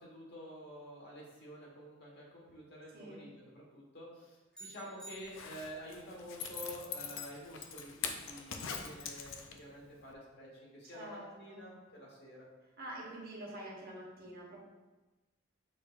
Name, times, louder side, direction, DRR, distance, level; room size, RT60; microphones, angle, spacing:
voice 1, 0.0-12.5, equal, 55° left, -3 dB, 1.2 m, -49 dB
voice 2, 2.9-3.3 8.6-8.9 10.9-11.6 12.8-14.6, right 1 dB, 50° right, -2 dB, 0.9 m, -47 dB
sound 1, 4.5-5.9, right 2 dB, 5° left, 0.8 m, -53 dB
Zipper (clothing), 5.2-9.8 10.1-10.2, left 6 dB, 75° left, 0.4 m, -42 dB
6.1 x 3.0 x 2.4 m, 1.1 s
head